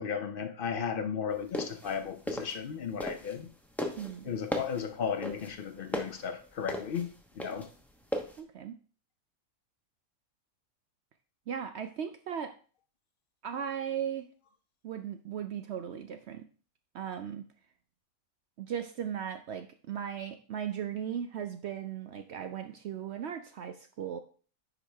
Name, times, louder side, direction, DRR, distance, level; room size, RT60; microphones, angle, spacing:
voice 1, 0.0-3.5 4.3-7.7, left 7 dB, 65° left, 8 dB, 0.5 m, -35 dB
sound 1, 1.4-3.5 3.8-8.4, equal, ahead, 0.6 m, -36 dB
voice 2, 4.0-4.3 8.4-8.8 11.5-12.5 13.4-14.3 14.8-16.5 16.9-17.5 18.6-24.2, right 8 dB, 70° right, 8 dB, 0.6 m, -37 dB
9.7 x 5.0 x 3.3 m, 0.41 s
omnidirectional pair, 1.6 m